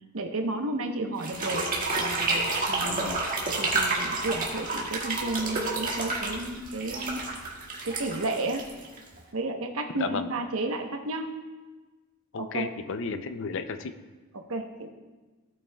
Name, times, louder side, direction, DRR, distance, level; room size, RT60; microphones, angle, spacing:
voice 1, 0.1-1.7 1.9-3.1 3.6-7.2 7.8-8.6 9.3-11.3 12.4-12.7 14.3-14.9, right 2 dB, 75° right, 4 dB, 0.9 m, -32 dB
sound 1, 1.2-9.2, right 3 dB, 40° right, 1.7 m, -29 dB
voice 2, 2.8-3.2 10.0-10.3 12.3-13.9, left 4 dB, 60° left, 10 dB, 0.5 m, -33 dB
16.0 x 8.3 x 2.3 m, 1.3 s
head